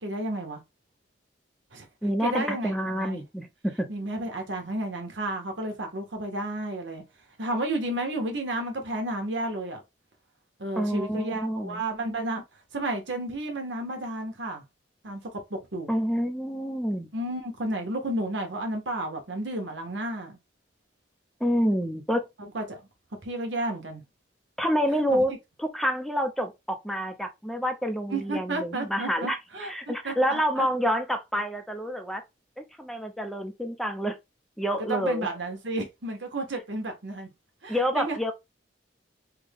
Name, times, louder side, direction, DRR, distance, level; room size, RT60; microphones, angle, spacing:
voice 1, 0.0-0.6 1.7-1.8 2.2-3.2 3.9-7.0 7.4-9.8 10.6-12.4 12.7-14.6 15.0-15.2 15.5-15.9 17.1-20.4 22.4-22.8 23.2-24.0 25.1-25.4 28.1-30.6 34.8-37.3 37.6-38.2, right 1 dB, 80° right, 1.1 m, -32 dB
voice 2, 2.0-3.9 10.7-11.8 15.9-17.1 21.4-22.2 24.6-25.3 25.6-32.2 32.6-34.2 34.6-35.3 37.7-38.3, equal, ahead, 0.5 m, -28 dB
3.5 x 2.2 x 3.4 m
head